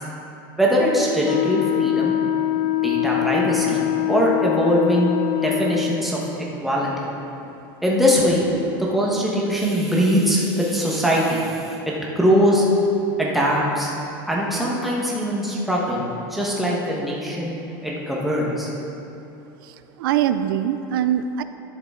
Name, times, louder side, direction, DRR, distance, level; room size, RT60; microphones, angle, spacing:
voice 1, 0.6-2.1 2.7-3.8 4.1-5.1 5.4-6.2 6.6-6.9 7.8-8.5 8.9-12.6 13.2-13.9 14.3-16.0 16.3-17.6 17.8-18.7, equal, ahead, -4 dB, 1.2 m, -21 dB
Wind instrument woodwind instrument, 1.2-6.1, left 13 dB, 50° left, 0.5 m, -23 dB
voice 2, 19.6-21.4, right 10 dB, 85° right, 10 dB, 0.4 m, -23 dB
11.5 x 6.7 x 3.7 m, 2.8 s
supercardioid pair, 160°, 11 cm